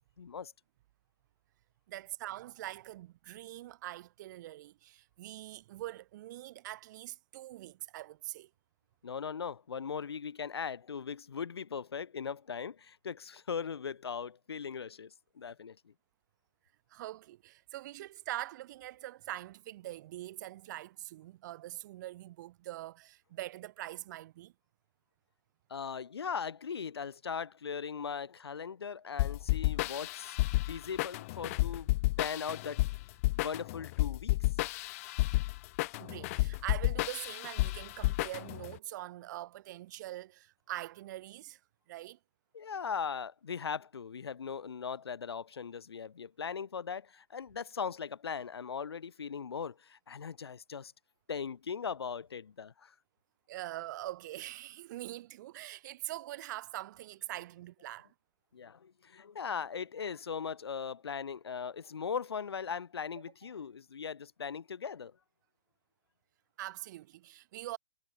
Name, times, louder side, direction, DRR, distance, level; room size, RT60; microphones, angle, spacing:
voice 1, 0.2-0.5 9.0-15.9 25.7-30.4 30.7-31.9 32.2-32.8 33.3-34.4 42.5-50.9 51.3-52.9 58.5-65.2, left 6 dB, 70° left, 2.0 m, -39 dB
voice 2, 1.9-8.5 16.9-24.5 36.0-41.6 41.9-42.2 53.5-58.1 66.6-67.8, right 15 dB, 45° right, 5.7 m, -43 dB
sound 1, 29.2-38.7, left 20 dB, 35° left, 0.5 m, -31 dB
figure-of-eight pair, 125°, 14 cm